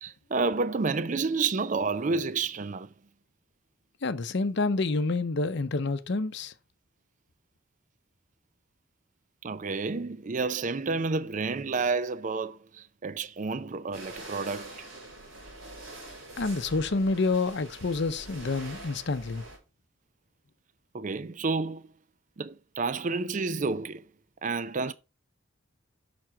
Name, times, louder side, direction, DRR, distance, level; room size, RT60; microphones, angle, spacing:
voice 1, 0.0-2.9 9.4-14.8 20.9-21.9 22.4-24.0 24.4-24.9, right 4 dB, 40° right, 0.5 m, -30 dB
voice 2, 4.0-6.5 16.4-19.4, left 3 dB, 60° left, 0.7 m, -28 dB
sound 1, 13.9-19.6, right 1 dB, 75° right, 4.4 m, -44 dB
7.5 x 6.1 x 4.6 m
head